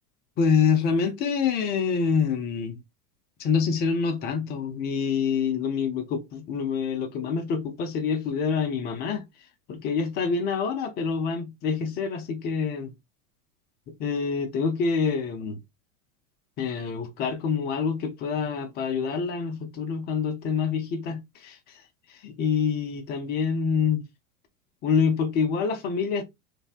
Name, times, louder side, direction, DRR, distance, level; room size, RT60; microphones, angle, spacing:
voice 1, 0.4-2.8 3.4-9.2 9.7-12.9 14.0-15.6 16.6-21.8 22.2-24.0 24.8-26.2, left 6 dB, 25° left, 0.3 m, -26 dB
2.6 x 2.1 x 2.3 m
hypercardioid pair, 95°, 44 cm